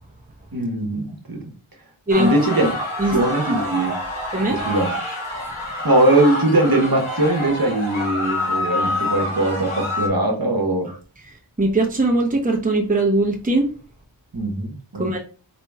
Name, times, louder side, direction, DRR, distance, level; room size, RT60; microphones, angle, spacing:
voice 1, 0.5-1.5 2.1-4.0 4.5-4.9 5.8-10.9 14.3-15.2, right 1 dB, 50° right, 1.1 m, -21 dB
sound 1, 2.1-10.1, left 1 dB, 85° left, 1.6 m, -27 dB
voice 2, 4.3-4.6 10.9-11.0 11.2-13.7 15.0-15.2, right 2 dB, 15° right, 0.8 m, -20 dB
4.4 x 2.9 x 3.5 m
wide cardioid pair, 45°, 47 cm